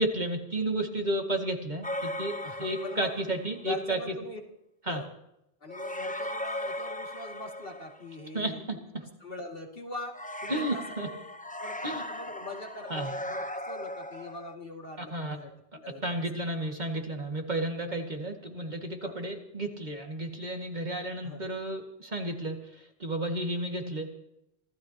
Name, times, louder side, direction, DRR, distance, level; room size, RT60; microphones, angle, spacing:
voice 1, 0.0-4.0 4.9-5.0 8.3-9.0 10.5-11.1 11.8-12.0 12.9-13.1 15.0-15.4 16.0-24.1, right 1 dB, 40° right, 2 dB, 2.2 m, -32 dB
sound 1, 1.8-3.6 5.7-8.2 10.1-14.5, left 1 dB, 10° left, 0.7 m, -37 dB
voice 2, 2.4-3.1 3.6-4.4 4.9-5.1 5.6-8.8 9.2-11.2 11.6-15.5 15.8-16.2 19.0-19.2 21.2-21.5, left 2 dB, 55° left, 0 dB, 2.6 m, -42 dB
26.0 x 16.5 x 2.9 m, 0.85 s
omnidirectional pair, 1.1 m